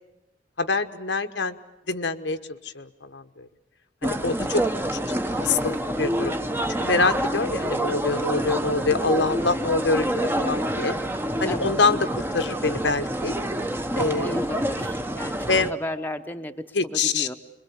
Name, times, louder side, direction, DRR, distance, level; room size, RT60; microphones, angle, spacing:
voice 1, 0.6-1.6 1.9-3.5 4.0-4.6 4.9-5.0 5.3-6.3 6.7-10.1 10.3-10.9 11.4-12.0 12.3-13.3 14.0-14.4 15.5-15.7 16.7-17.3, left 3 dB, 80° left, 8 dB, 1.2 m, -25 dB
sound 1, 4.0-15.7, right 1 dB, 10° right, 1.1 m, -27 dB
voice 2, 4.2-4.6 11.5-11.7 14.2-17.3, left 1 dB, 10° left, 5 dB, 1.0 m, -35 dB
26.5 x 22.5 x 8.6 m, 0.92 s
head